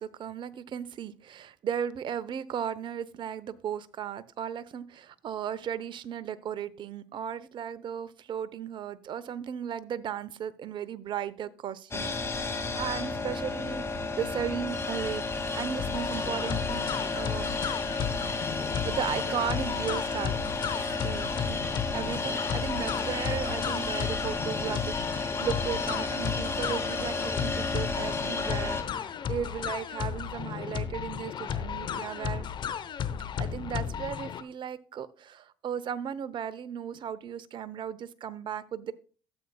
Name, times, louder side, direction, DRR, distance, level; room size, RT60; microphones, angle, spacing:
voice 1, 0.0-16.9 17.1-17.6 18.8-20.3 20.8-21.6 21.9-32.5 33.4-38.9, right 8 dB, 50° right, 0.8 m, -36 dB
sound 1, 11.9-28.8, left 3 dB, 25° left, 2.3 m, -32 dB
sound 2, 15.8-34.4, left 8 dB, 50° left, 0.9 m, -34 dB
13.0 x 7.9 x 2.3 m
hypercardioid pair, 65°, 10 cm